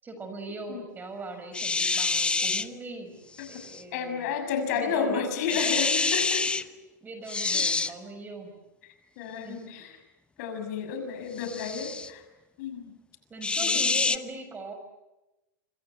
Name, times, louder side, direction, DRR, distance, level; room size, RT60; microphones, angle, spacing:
voice 1, 0.0-3.2 3.5-4.4 4.7-5.3 5.5-5.6 5.9-6.4 7.0-8.5 9.4-9.7 13.3-14.7, right 3 dB, 15° right, 7 dB, 6.0 m, -40 dB
sound 1, 1.5-2.7 3.4-3.8 5.5-6.6 7.3-7.9 11.4-12.1 13.4-14.2, left 3 dB, 10° left, 1.0 m, -27 dB
voice 2, 3.9-6.5 7.5-7.7 9.2-9.9 10.4-12.2 12.6-12.9 13.6-14.2, left 6 dB, 55° left, 8 dB, 6.4 m, -32 dB
26.5 x 26.0 x 8.1 m, 1.0 s
hypercardioid pair, 120°, 10 cm